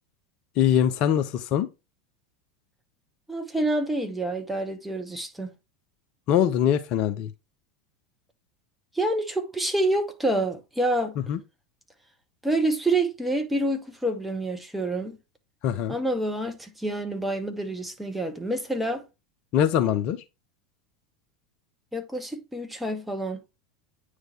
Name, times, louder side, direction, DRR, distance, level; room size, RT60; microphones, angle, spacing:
voice 1, 0.6-1.7 6.3-7.3 11.3-11.4 15.6-15.9 19.5-20.2, left 10 dB, 45° left, 0.5 m, -22 dB
voice 2, 3.3-5.5 8.9-11.2 12.4-15.2 15.9-19.0 21.9-23.4, right 1 dB, 5° right, 1.0 m, -27 dB
9.0 x 3.2 x 3.6 m
figure-of-eight pair, 80°, 2 cm